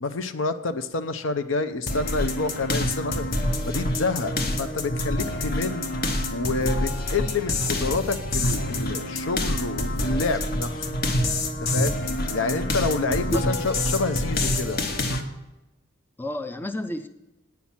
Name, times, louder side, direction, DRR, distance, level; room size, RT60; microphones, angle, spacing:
voice 1, 0.0-3.2 3.7-5.9 6.3-10.9 11.7-11.9 12.3-14.8, left 3 dB, 70° left, 11 dB, 0.6 m, -28 dB
sound 1, 1.9-15.2, left 1 dB, 50° left, 1.0 m, -27 dB
voice 2, 13.0-13.4 16.2-17.1, equal, 10° left, 8 dB, 0.4 m, -30 dB
9.5 x 5.8 x 7.3 m, 1.0 s
head